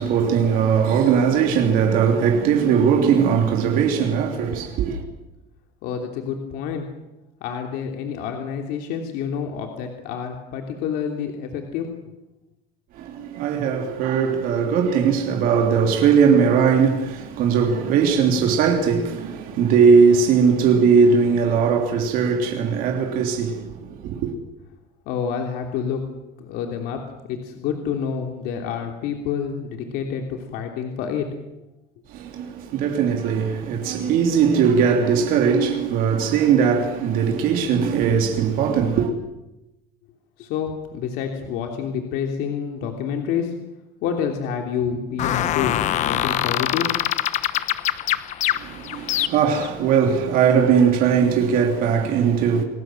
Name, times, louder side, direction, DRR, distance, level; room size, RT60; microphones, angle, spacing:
voice 1, 0.0-5.0 12.9-24.3 32.1-39.1 48.5-52.6, right 6 dB, 55° right, 3.2 m, -19 dB
voice 2, 5.8-6.9 7.4-11.9 25.1-26.1 26.4-31.3 40.4-43.5 44.0-46.9, left 7 dB, 65° left, 3.2 m, -28 dB
sound 1, 45.2-49.7, left 12 dB, 40° left, 1.0 m, -24 dB
28.5 x 20.0 x 7.8 m
cardioid pair, 175°, 18 cm